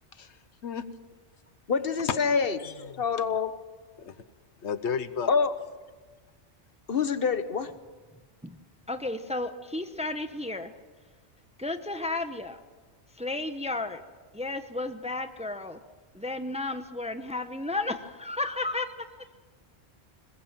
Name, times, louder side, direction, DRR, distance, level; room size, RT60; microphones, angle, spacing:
voice 1, 0.2-0.8 2.1-2.2 2.6-3.4 4.0-4.2 4.6-5.3, left 6 dB, 80° left, 13 dB, 1.2 m, -34 dB
voice 2, 1.7-2.6 3.0-3.5 5.3-5.5 6.9-7.7, left 5 dB, 55° left, 11 dB, 1.2 m, -26 dB
voice 3, 8.9-10.7 11.6-12.6 13.2-14.0 14.3-15.8 16.1-19.1, left 2 dB, 5° right, 9 dB, 0.8 m, -33 dB
21.0 x 21.0 x 7.4 m, 1.4 s
omnidirectional pair, 1.2 m